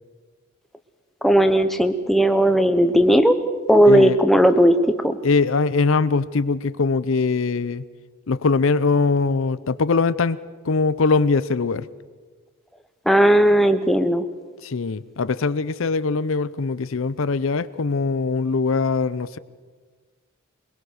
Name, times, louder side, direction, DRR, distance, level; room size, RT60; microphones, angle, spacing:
voice 1, 1.2-3.4 3.7-4.8 5.0-5.2 13.1-14.2, equal, ahead, 8 dB, 0.9 m, -16 dB
voice 2, 3.8-4.2 5.2-7.8 8.3-11.9 14.6-19.4, left 4 dB, 65° left, 16 dB, 0.6 m, -22 dB
22.5 x 21.5 x 6.5 m, 1.4 s
head